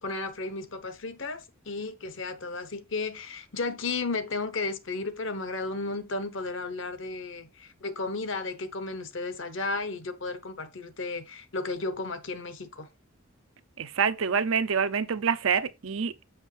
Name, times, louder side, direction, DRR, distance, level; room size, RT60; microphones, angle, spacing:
voice 1, 0.0-12.9, left 3 dB, 60° left, 1.0 m, -34 dB
voice 2, 13.8-16.2, right 6 dB, 70° right, 0.6 m, -26 dB
7.1 x 6.2 x 3.4 m
head